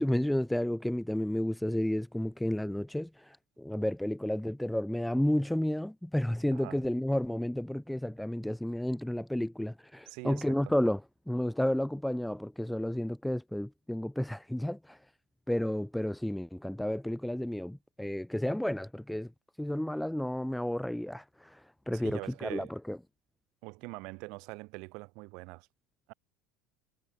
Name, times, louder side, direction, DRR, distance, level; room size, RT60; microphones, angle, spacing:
voice 1, 0.0-11.0 11.3-15.0 15.5-19.3 19.6-21.6 21.9-23.0, left 1 dB, 5° left, 0.8 m, -31 dB
voice 2, 6.5-6.8 10.1-10.7 21.9-22.7 23.6-25.7 26.1-26.2, right 27 dB, 60° right, 5.8 m, -43 dB
hypercardioid pair, 75°, 0 cm